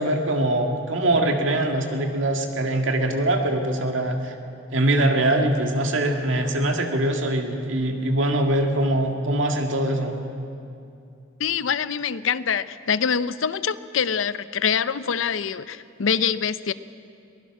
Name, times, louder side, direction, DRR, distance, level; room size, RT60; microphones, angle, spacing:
voice 1, 0.0-4.3 4.7-10.2, right 1 dB, 70° right, 3 dB, 2.1 m, -23 dB
voice 2, 11.4-16.7, left 7 dB, 80° left, 15 dB, 0.6 m, -25 dB
22.5 x 19.5 x 6.1 m, 2.6 s
head